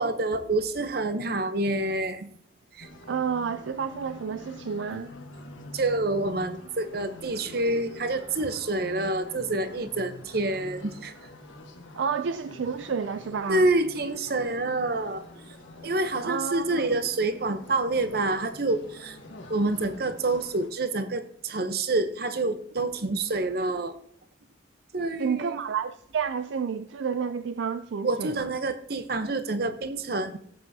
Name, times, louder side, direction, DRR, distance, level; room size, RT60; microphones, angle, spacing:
voice 1, 0.0-2.3 2.7-2.9 5.7-11.1 13.5-15.4 15.8-19.2 19.5-24.0 24.9-25.6 28.0-30.4, right 2 dB, 50° right, 0.8 m, -27 dB
sound 1, 2.8-20.7, left 1 dB, 80° left, 1.3 m, -46 dB
voice 2, 3.1-5.1 12.0-13.7 16.2-16.8 25.2-28.5, right 6 dB, 70° right, 0.4 m, -30 dB
16.5 x 8.0 x 2.7 m
head